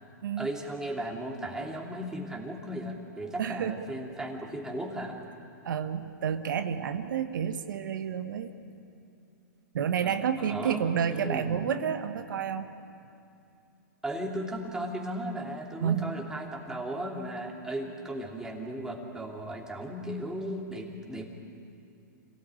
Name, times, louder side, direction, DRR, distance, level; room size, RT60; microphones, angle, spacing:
voice 1, 0.4-5.2 10.0-10.8 11.1-11.6 14.0-21.3, right 1 dB, 5° right, 0 dB, 2.9 m, -36 dB
voice 2, 3.4-3.8 5.6-8.5 9.7-12.7 15.8-16.2, right 8 dB, 80° right, 8 dB, 1.3 m, -30 dB
27.0 x 17.5 x 9.0 m, 2.6 s
hypercardioid pair, 135°, 10 cm